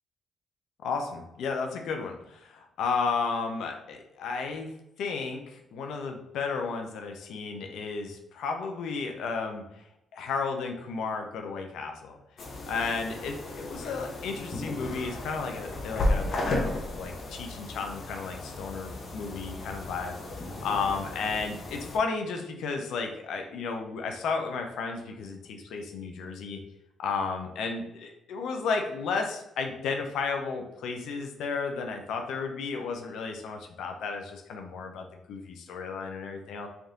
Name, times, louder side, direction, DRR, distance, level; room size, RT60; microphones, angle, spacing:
voice 1, 0.8-4.7 5.0-9.6 10.1-12.2 12.7-20.2 20.6-26.6 27.0-36.7, left 4 dB, 80° left, 4 dB, 0.6 m, -33 dB
sound 1, 12.4-22.0, left 2 dB, 50° left, 0.9 m, -34 dB
3.5 x 2.7 x 3.7 m, 0.85 s
cardioid pair, 90°, 0 cm